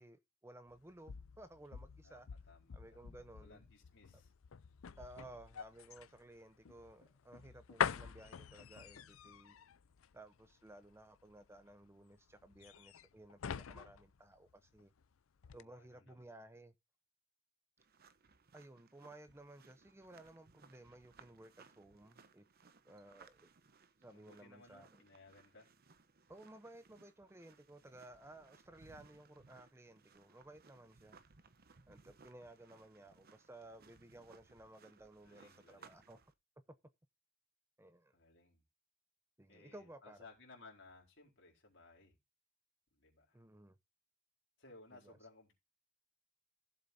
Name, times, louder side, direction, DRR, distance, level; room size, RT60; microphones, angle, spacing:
voice 1, 0.0-2.3 2.7-3.6 4.1-4.2 5.0-9.6 10.1-14.9 15.5-16.7 18.5-22.5 22.8-23.5 24.0-25.0 26.3-31.2 31.9-36.2 37.8-38.1 39.4-40.2 43.3-43.8 45.0-45.2, right 1 dB, 15° right, 0.7 m, -57 dB
sound 1, 0.7-15.1 15.4-15.6, left 7 dB, 85° left, 0.5 m, -45 dB
voice 2, 2.0-4.3 15.4-16.2 24.1-25.7 35.2-36.1 38.1-38.6 39.5-42.2 42.9-43.4 44.6-45.5, left 3 dB, 65° left, 4.3 m, -61 dB
sound 2, 17.8-36.3, right 5 dB, 50° right, 0.9 m, -65 dB
16.0 x 7.4 x 2.7 m
head